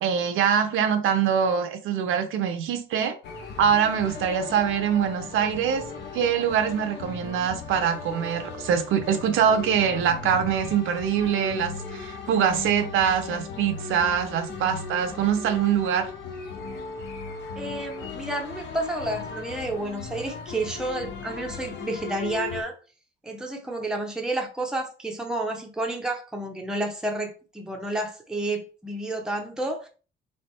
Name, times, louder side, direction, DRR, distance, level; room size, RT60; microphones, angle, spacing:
voice 1, 0.0-3.2 3.6-5.8 6.1-16.1, right 8 dB, 80° right, 0.9 m, -24 dB
sound 1, 3.2-22.6, left 5 dB, 60° left, 1.2 m, -37 dB
voice 2, 17.6-22.7 23.2-29.9, right 2 dB, 5° right, 0.8 m, -30 dB
3.5 x 3.4 x 4.4 m
cardioid pair, 160°, 21 cm